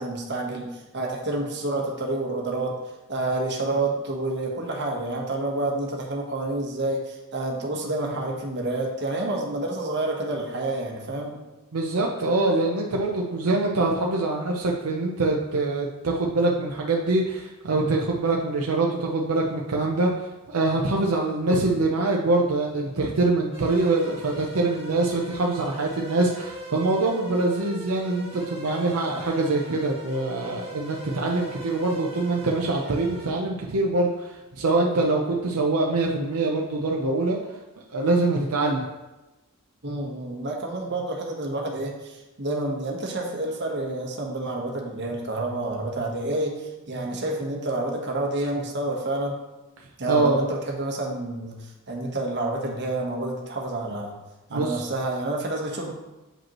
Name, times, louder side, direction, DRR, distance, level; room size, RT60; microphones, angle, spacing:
voice 1, 0.0-2.8 3.1-11.4 31.1-31.2 39.8-49.3 50.0-54.1 54.5-55.9, right 2 dB, 50° right, 0 dB, 1.2 m, -29 dB
voice 2, 11.7-37.4 37.9-38.8 50.1-50.4 54.5-54.8, right 2 dB, 75° right, -1 dB, 0.7 m, -24 dB
sound 1, 23.5-33.3, right 1 dB, 25° right, 1.6 m, -40 dB
7.6 x 5.2 x 3.0 m, 1.1 s
head